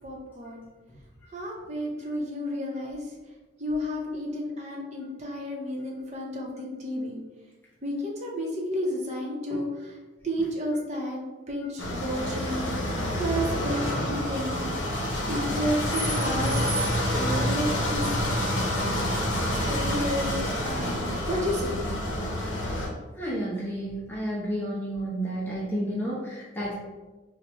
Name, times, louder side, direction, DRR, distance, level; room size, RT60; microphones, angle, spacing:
voice 1, 0.0-0.6 1.3-3.0 3.6-7.2 7.8-9.7 10.2-11.2 11.5-12.7 13.2-14.7 15.3-16.6 17.1-18.1 19.7-21.7, equal, 35° right, -2 dB, 0.7 m, -31 dB
sound 1, 11.8-22.9, equal, 75° left, 0.8 m, -28 dB
voice 2, 22.4-22.7 23.2-26.7, right 1 dB, 10° left, -7 dB, 0.7 m, -31 dB
4.5 x 2.2 x 3.0 m, 1.2 s
head